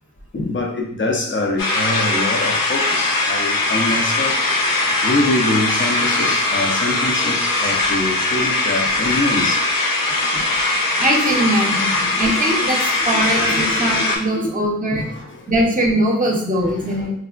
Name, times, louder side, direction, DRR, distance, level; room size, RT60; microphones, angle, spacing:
voice 1, 0.3-4.4 5.0-9.7 10.3-10.6 12.1-12.2 13.1-13.8 14.9-15.5 16.6-17.0, left 2 dB, 35° left, 1 dB, 0.6 m, -24 dB
sound 1, 1.6-14.2, left 2 dB, 80° left, 0.5 m, -20 dB
voice 2, 11.0-15.1 15.5-17.1, right 1 dB, 25° right, 0 dB, 0.7 m, -21 dB
3.2 x 2.0 x 2.4 m, 0.66 s
cardioid pair, 50°, 33 cm